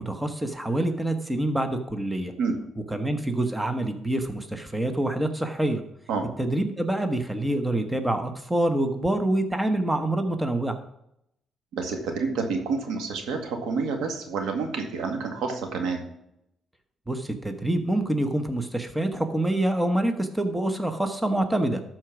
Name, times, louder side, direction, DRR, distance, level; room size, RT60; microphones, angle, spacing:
voice 1, 0.0-2.3 2.9-5.8 6.4-10.8 17.1-21.8, right 1 dB, 10° right, 7 dB, 1.1 m, -26 dB
voice 2, 11.7-16.1, right 4 dB, 85° right, 4 dB, 2.0 m, -28 dB
13.0 x 4.5 x 6.0 m, 0.78 s
cardioid pair, 90°, 0 cm